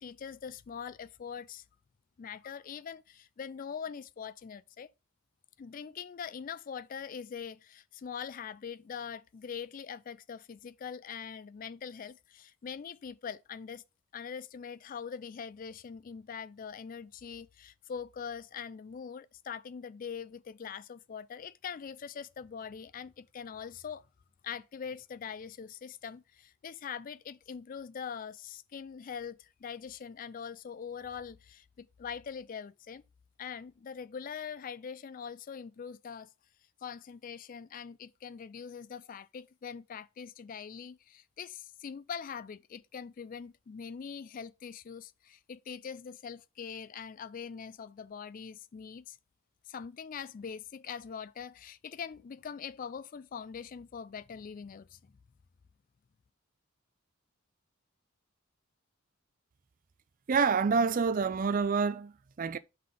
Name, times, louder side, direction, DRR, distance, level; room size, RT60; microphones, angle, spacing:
voice 1, 0.0-1.6 2.2-4.9 5.6-13.8 14.1-24.1 24.4-33.0 33.4-36.3 36.8-49.2 49.7-55.1, left 7 dB, 40° left, 0.3 m, -43 dB
voice 2, 60.3-62.6, right 5 dB, 40° right, 0.4 m, -27 dB
5.6 x 3.9 x 4.9 m
head